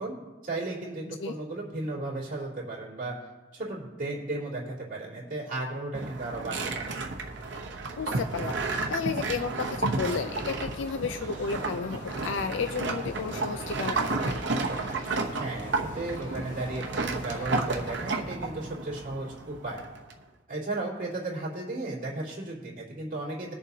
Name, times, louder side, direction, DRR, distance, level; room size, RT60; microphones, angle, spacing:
voice 1, 0.0-3.2 3.5-6.8 15.4-19.8 20.5-23.5, right 2 dB, 45° right, -4 dB, 2.9 m, -35 dB
sound 1, 5.9-20.1, right 3 dB, 65° right, 0.9 m, -32 dB
voice 2, 8.0-8.6 8.9-14.4, left 5 dB, 75° left, 9 dB, 0.4 m, -32 dB
sound 2, 9.6-18.1, left 1 dB, 40° left, 1.5 m, -44 dB
21.0 x 7.0 x 2.8 m, 1.2 s
head